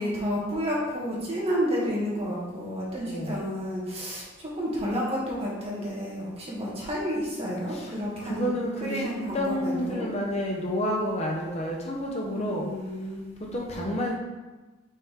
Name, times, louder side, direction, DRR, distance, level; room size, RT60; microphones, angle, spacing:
voice 1, 0.0-8.5 8.8-10.1 12.3-13.3, equal, 30° right, -6 dB, 1.7 m, -30 dB
voice 2, 3.0-3.4 7.7-7.9 8.2-9.1 9.3-12.6 13.4-14.2, equal, 30° left, -1 dB, 0.7 m, -30 dB
5.5 x 4.9 x 3.6 m, 1.2 s
head